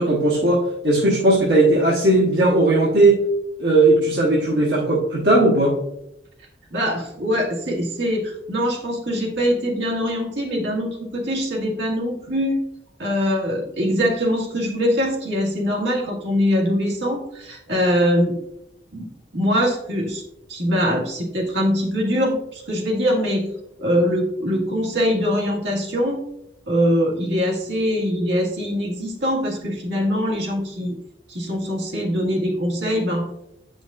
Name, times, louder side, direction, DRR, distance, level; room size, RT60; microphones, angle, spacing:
voice 1, 0.0-3.2 3.6-5.8, right 2 dB, 75° right, -5 dB, 1.2 m, -17 dB
voice 2, 6.7-12.6 13.0-18.3 18.9-19.1 19.3-20.2 20.5-23.5 23.8-26.3 26.7-30.9 31.3-33.3, equal, 90° right, -2 dB, 1.8 m, -22 dB
8.4 x 5.1 x 2.5 m, 0.80 s
head